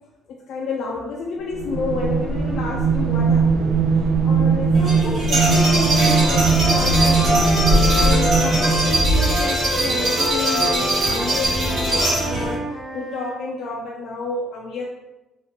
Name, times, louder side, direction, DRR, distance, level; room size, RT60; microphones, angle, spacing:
voice 1, 0.3-14.9, left 3 dB, 55° left, -2 dB, 0.3 m, -30 dB
sound 1, 1.5-9.2, right 5 dB, 75° right, 0.4 m, -20 dB
sound 2, 4.7-12.5, right 1 dB, 45° right, 1.0 m, -21 dB
Wind instrument woodwind instrument, 5.3-8.9 9.2-13.4, equal, 10° right, 0.9 m, -29 dB
2.7 x 2.4 x 3.4 m, 1.0 s
cardioid pair, 180°, 0 cm